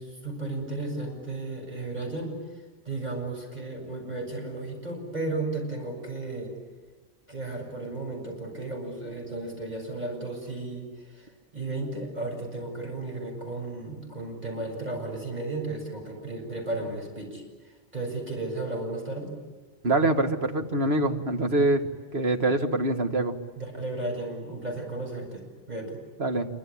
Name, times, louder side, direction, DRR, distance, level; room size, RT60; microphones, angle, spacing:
voice 1, 0.0-2.3 2.8-6.5 7.3-17.4 17.9-19.3 23.5-26.0, right 2 dB, 40° right, 1 dB, 7.9 m, -34 dB
voice 2, 19.8-21.9 22.1-23.3 26.2-26.5, right 2 dB, 60° right, 5 dB, 2.1 m, -24 dB
27.0 x 25.0 x 8.7 m, 1.3 s
omnidirectional pair, 1.2 m